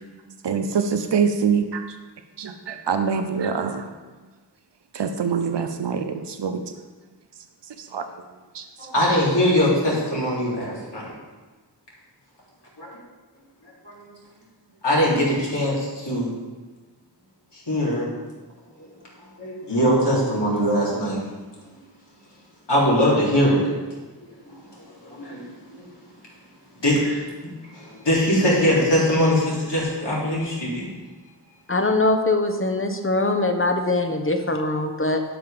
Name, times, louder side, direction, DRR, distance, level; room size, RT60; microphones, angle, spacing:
voice 1, 0.4-1.8 2.4-3.9 4.9-6.6 7.9-8.0 8.5-8.6, right 6 dB, 85° right, 7 dB, 0.7 m, -24 dB
voice 2, 8.8-11.0 12.8-12.9 13.8-14.1 14.8-16.4 17.5-18.1 19.4-21.2 22.7-23.7 24.5-24.6 25.0-25.4 25.8-25.9 26.8-30.9, equal, 80° left, -6 dB, 3.3 m, -22 dB
voice 3, 31.7-35.2, left 2 dB, 30° left, 5 dB, 1.1 m, -22 dB
11.5 x 5.7 x 5.0 m, 1.3 s
wide cardioid pair, 40°, 41 cm